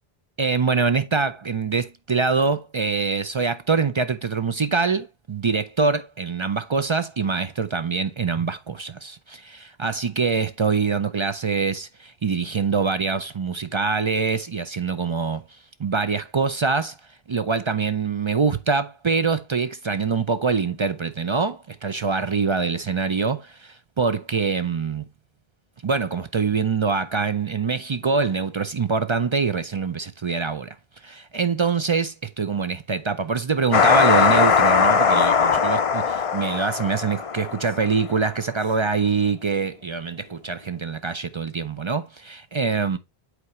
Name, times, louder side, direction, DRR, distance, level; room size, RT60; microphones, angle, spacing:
voice 1, 0.4-15.4 15.8-17.0 17.3-25.0 25.8-30.8 31.0-43.0, right 5 dB, 45° right, 0.4 m, -24 dB
sound 1, 33.7-38.0, left 6 dB, 40° left, 0.6 m, -19 dB
8.0 x 4.8 x 3.1 m
omnidirectional pair, 1.0 m